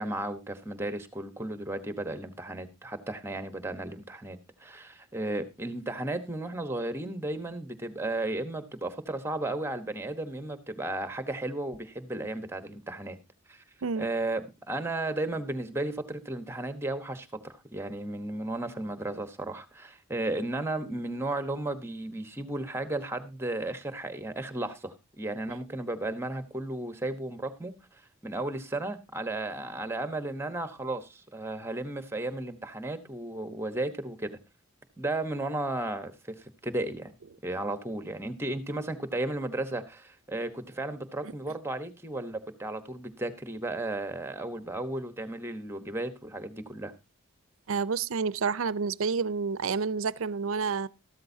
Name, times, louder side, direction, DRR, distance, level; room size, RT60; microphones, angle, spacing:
voice 1, 0.0-13.2 13.5-13.6 14.0-27.7 28.2-34.4 35.0-37.1 37.4-46.9, right 2 dB, 10° right, 1.1 m, -34 dB
voice 2, 47.7-50.9, right 5 dB, 70° right, 0.5 m, -29 dB
13.5 x 12.5 x 2.7 m
head